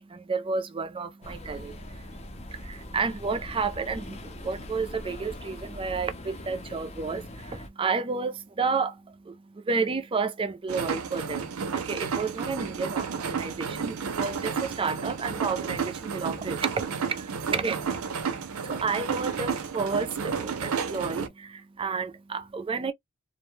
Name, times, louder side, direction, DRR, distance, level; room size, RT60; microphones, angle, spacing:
voice 1, 0.0-22.9, right 4 dB, 25° right, 0.4 m, -31 dB
sound 1, 1.2-7.7, left 1 dB, 30° left, 0.7 m, -42 dB
sound 2, 10.7-21.3, right 6 dB, 90° right, 0.5 m, -32 dB
2.5 x 2.2 x 3.1 m
head